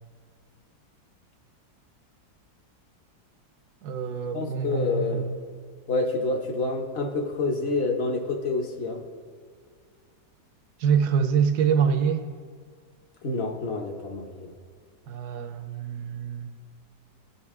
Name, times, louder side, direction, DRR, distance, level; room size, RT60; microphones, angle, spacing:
voice 1, 3.8-5.4 10.8-12.3 15.1-16.5, right 7 dB, 70° right, 1.0 m, -25 dB
voice 2, 4.3-5.3 5.9-9.0 13.2-14.5, left 3 dB, 50° left, 0.7 m, -28 dB
16.0 x 5.5 x 3.5 m
omnidirectional pair, 1.9 m